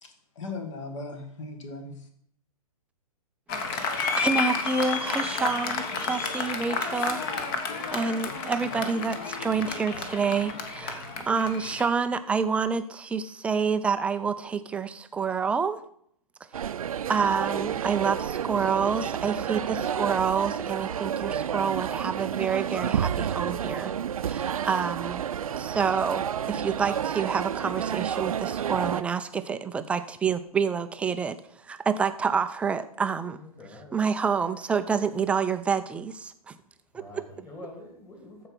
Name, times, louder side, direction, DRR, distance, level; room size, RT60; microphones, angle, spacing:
voice 1, 0.0-2.1, left 3 dB, 55° left, 6 dB, 2.0 m, -38 dB
Applause, 3.5-11.9, left 5 dB, 35° left, 1.3 m, -31 dB
voice 2, 3.7-7.2 7.9-15.8 17.1-23.9 24.2-25.2 25.6-31.4 31.7-33.4 33.9-36.6 36.9-37.2, right 6 dB, 5° right, 10 dB, 0.3 m, -28 dB
sound 1, 16.5-29.0, right 9 dB, 65° right, 0.5 m, -30 dB
voice 3, 33.3-34.0 35.1-35.2 36.9-38.5, left 2 dB, 15° left, 1 dB, 2.6 m, -45 dB
14.0 x 4.7 x 5.9 m, 0.67 s
figure-of-eight pair, 120°, 20 cm